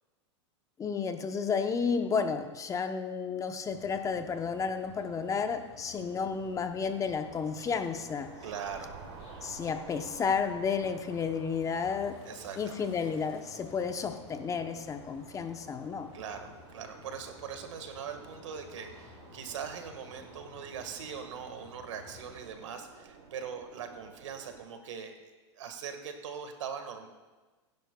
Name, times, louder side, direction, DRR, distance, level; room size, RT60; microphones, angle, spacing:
voice 1, 0.8-8.3 9.4-12.2 12.6-16.1, left 6 dB, 20° left, 7 dB, 0.8 m, -32 dB
sound 1, 3.7-22.5, left 5 dB, 50° left, 4.4 m, -54 dB
sound 2, 5.9-24.7, right 5 dB, 65° right, 3.3 m, -52 dB
voice 2, 8.4-9.0 12.2-12.8 16.1-25.1 25.5-27.1, right 7 dB, 80° right, 6 dB, 1.6 m, -41 dB
20.5 x 10.5 x 2.3 m, 1.3 s
hypercardioid pair, 115°, 15 cm